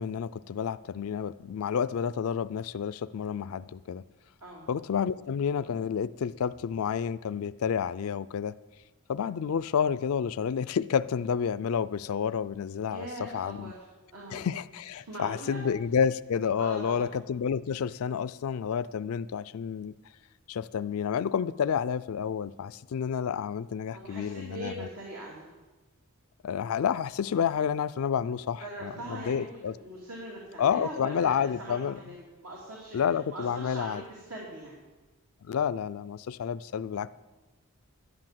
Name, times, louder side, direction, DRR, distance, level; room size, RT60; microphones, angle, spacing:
voice 1, 0.0-4.0 4.7-8.5 9.1-13.1 13.3-13.7 14.3-19.9 20.5-24.9 26.4-29.7 30.6-32.0 32.9-34.0 35.4-37.1, left 7 dB, 70° left, 16 dB, 0.4 m, -30 dB
voice 2, 12.9-13.9 14.1-14.4 15.1-15.6 16.6-17.1 23.9-25.5 28.6-29.4 29.8-33.0 33.3-34.8, right 1 dB, 80° right, -4 dB, 2.7 m, -41 dB
11.5 x 9.9 x 7.5 m, 1.2 s
head